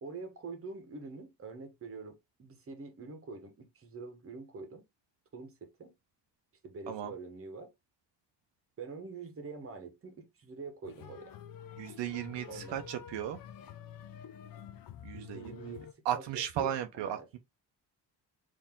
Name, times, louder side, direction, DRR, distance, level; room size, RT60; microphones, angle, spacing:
voice 1, 0.0-4.8 5.3-5.9 6.6-7.7 8.8-11.4 12.5-12.9 15.1-17.3, right 4 dB, 30° right, 1.1 m, -45 dB
sound 1, 10.8-15.9, left 9 dB, 50° left, 0.6 m, -48 dB
voice 2, 11.8-13.4 15.0-15.7 16.1-17.4, right 10 dB, 75° right, 0.8 m, -35 dB
4.4 x 2.9 x 3.6 m
cardioid pair, 140°, 43 cm